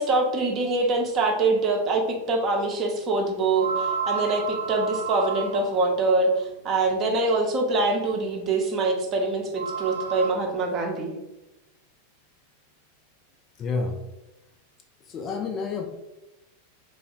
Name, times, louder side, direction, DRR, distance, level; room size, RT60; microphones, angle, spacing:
voice 1, 0.0-11.1, right 3 dB, 30° right, 1 dB, 0.7 m, -24 dB
sound 1, 1.8-1.9 3.5-5.9 7.8-7.9 9.4-10.3, right 5 dB, 75° right, 0.4 m, -31 dB
voice 2, 13.6-14.0 15.1-15.9, left 4 dB, 30° left, 4 dB, 0.4 m, -29 dB
3.2 x 2.2 x 3.8 m, 0.96 s
figure-of-eight pair, 90°, 0 cm